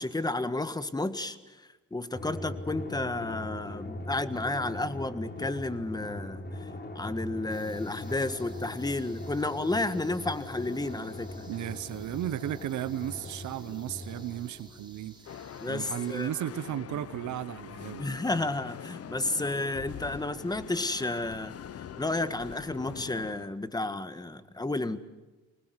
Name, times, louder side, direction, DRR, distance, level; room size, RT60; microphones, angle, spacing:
voice 1, 0.0-6.7 6.9-11.4 15.6-16.6 18.0-21.6 22.0-25.0, left 2 dB, 15° left, 1.6 m, -32 dB
Drum, 2.1-15.2, left 1 dB, 35° left, 3.3 m, -41 dB
sound 1, 7.5-16.3, right 3 dB, 15° right, 4.4 m, -56 dB
voice 2, 11.5-15.1 15.7-18.0, right 12 dB, 75° right, 1.0 m, -34 dB
sound 2, 15.3-23.5, left 9 dB, 50° left, 1.0 m, -43 dB
25.0 x 20.0 x 8.2 m
cardioid pair, 90°, 30 cm